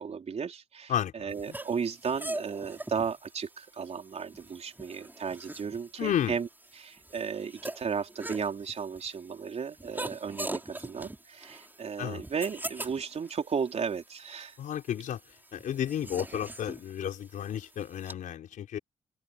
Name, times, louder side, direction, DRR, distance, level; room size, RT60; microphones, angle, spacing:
voice 1, 0.0-6.5 6.7-14.6 16.1-16.2, right 6 dB, 50° right, 4.1 m, -34 dB
voice 2, 0.9-1.3 6.0-6.4 12.0-12.2 14.6-15.2 15.5-18.8, left 10 dB, 75° left, 4.5 m, -32 dB
sound 1, 1.3-18.1, right 1 dB, 15° right, 5.9 m, -43 dB
cardioid pair, 70°, 14 cm